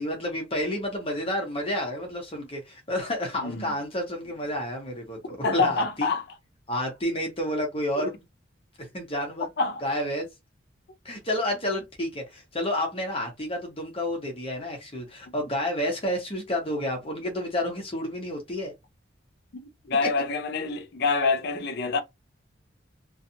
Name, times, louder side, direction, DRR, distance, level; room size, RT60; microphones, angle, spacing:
voice 1, 0.0-5.2 5.5-6.1 6.7-8.2 8.8-9.5 9.8-10.3 11.0-18.7, left 1 dB, 30° left, 0.9 m, -30 dB
voice 2, 3.4-3.7 5.2-6.3 8.0-8.1 9.6-9.8 19.8-22.0, left 4 dB, 55° left, 0.5 m, -26 dB
2.5 x 2.4 x 2.7 m
head